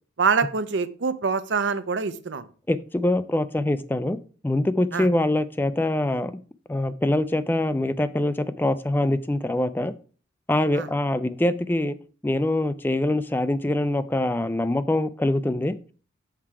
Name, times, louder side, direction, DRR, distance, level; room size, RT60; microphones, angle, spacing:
voice 1, 0.2-2.5 4.9-5.1 10.7-10.9, right 5 dB, 65° right, 13 dB, 0.6 m, -25 dB
voice 2, 2.7-4.2 4.4-6.3 6.7-9.9 10.5-12.0 12.2-15.7, left 1 dB, 10° left, 13 dB, 0.3 m, -24 dB
5.9 x 4.4 x 4.8 m, 0.40 s
head